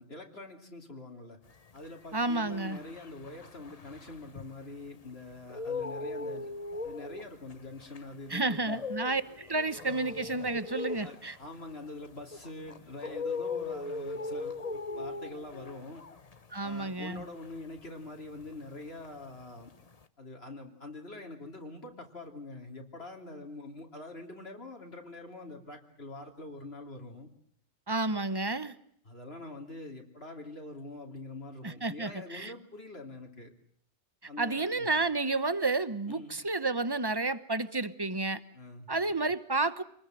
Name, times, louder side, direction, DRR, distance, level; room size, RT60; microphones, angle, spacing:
voice 1, 0.0-1.4 1.7-6.5 6.8-8.8 11.0-16.0 16.6-19.7 20.2-27.3 29.0-33.5 34.3-34.9 36.1-36.3 38.5-38.9, left 2 dB, 65° left, 2 dB, 3.3 m, -45 dB
sound 1, 1.7-4.9 5.3-18.7 19.0-20.0, left 3 dB, 35° left, 1.2 m, -39 dB
voice 2, 2.1-2.8 8.3-11.4 16.5-17.2 27.9-28.7 31.6-32.5 34.4-38.4 38.9-39.8, right 3 dB, 20° right, 14 dB, 1.2 m, -31 dB
27.5 x 20.5 x 7.8 m, 0.67 s
omnidirectional pair, 1.1 m